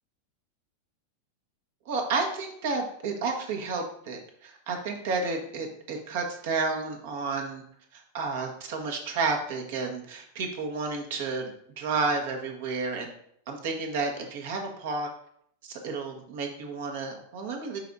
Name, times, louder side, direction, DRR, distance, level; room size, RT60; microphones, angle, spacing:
voice 1, 1.8-7.6 7.9-13.1 13.5-15.1 15.6-17.8, right 4 dB, 55° right, 2 dB, 1.6 m, -31 dB
11.5 x 4.7 x 2.7 m, 0.67 s
figure-of-eight pair, 90°, 0 cm